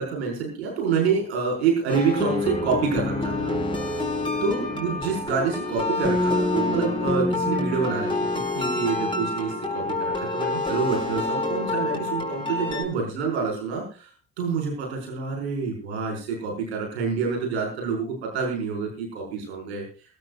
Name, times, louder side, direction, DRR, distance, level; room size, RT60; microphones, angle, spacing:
voice 1, 0.0-3.6 4.4-8.1 8.4-14.1 14.4-19.8, right 5 dB, 90° right, -1 dB, 5.2 m, -27 dB
sound 1, 1.9-12.8, left 2 dB, 15° left, 5.9 m, -27 dB
23.0 x 13.5 x 2.5 m, 0.36 s
hypercardioid pair, 45°, 32 cm